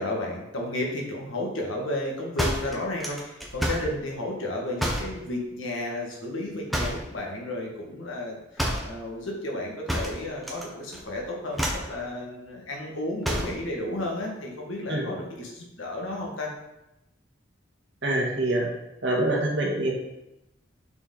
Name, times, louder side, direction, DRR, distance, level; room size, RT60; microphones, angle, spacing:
voice 1, 0.0-16.5, left 1 dB, 90° left, -1 dB, 1.6 m, -33 dB
sound 1, 2.4-3.9 4.8-5.2 6.7-7.1 8.6-8.9 9.9-10.7 10.9-11.2 11.5-11.9 13.2-13.6, equal, ahead, 0.7 m, -29 dB
voice 2, 18.0-18.7 19.0-19.9, right 1 dB, 65° right, -2 dB, 1.6 m, -25 dB
6.6 x 4.6 x 3.8 m, 0.91 s
head